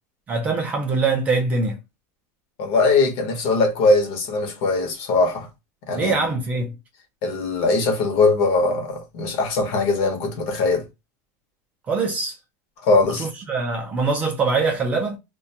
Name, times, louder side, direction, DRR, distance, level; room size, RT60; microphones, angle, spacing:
voice 1, 0.3-1.8 5.9-6.7 11.9-12.3 13.2-15.2, right 4 dB, 15° right, 0.4 m, -23 dB
voice 2, 2.6-5.5 5.9-6.3 7.2-10.9 12.8-13.3, left 3 dB, 45° left, 0.8 m, -21 dB
2.4 x 2.2 x 2.6 m
supercardioid pair, 175°, 9 cm